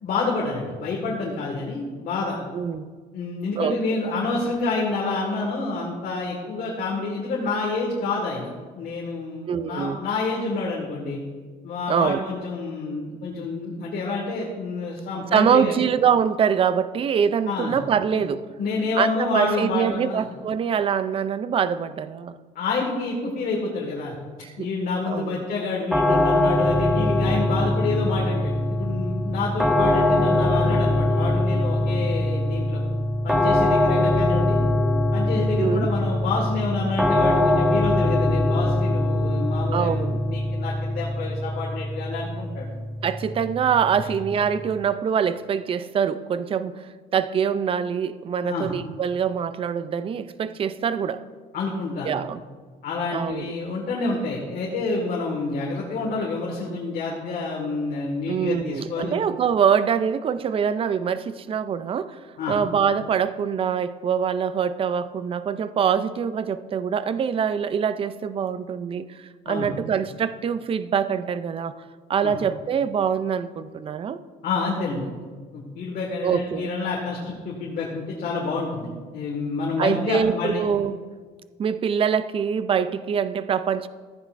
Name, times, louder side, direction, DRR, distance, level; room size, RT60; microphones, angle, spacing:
voice 1, 0.0-2.4 3.1-8.5 8.8-11.2 11.6-15.8 17.5-17.8 18.1-18.3 18.6-20.2 22.6-24.2 24.6-32.8 33.2-34.6 35.1-42.7 44.0-44.1 48.4-48.7 51.5-52.3 52.8-59.2 62.4-62.6 69.5-69.7 72.2-72.3 74.4-75.1 75.5-80.7, left 3 dB, 60° left, -3 dB, 1.8 m, -28 dB
voice 2, 2.5-2.9 3.6-3.8 9.5-10.0 11.9-12.2 15.3-18.5 19.0-22.4 24.4-24.7 25.1-25.4 35.6-35.9 39.7-40.2 43.0-51.2 52.0-52.4 53.1-53.5 58.3-71.7 72.1-74.2 76.2-76.7 79.8-81.0 81.6-83.9, right 7 dB, 35° right, 14 dB, 0.4 m, -24 dB
sound 1, 25.9-44.8, left 1 dB, ahead, 1.0 m, -22 dB
14.5 x 9.7 x 2.6 m, 1.5 s
cardioid pair, 110°, 17 cm